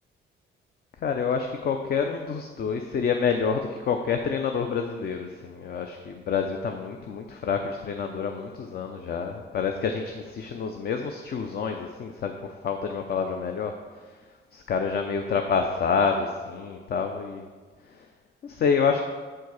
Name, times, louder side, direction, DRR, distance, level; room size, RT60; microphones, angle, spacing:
voice 1, 1.0-12.3 12.6-13.7 14.5-17.5 18.0-18.1 18.4-19.0, left 6 dB, 50° left, 5 dB, 0.5 m, -28 dB
7.3 x 4.5 x 4.7 m, 1.5 s
cardioid pair, 90°, 20 cm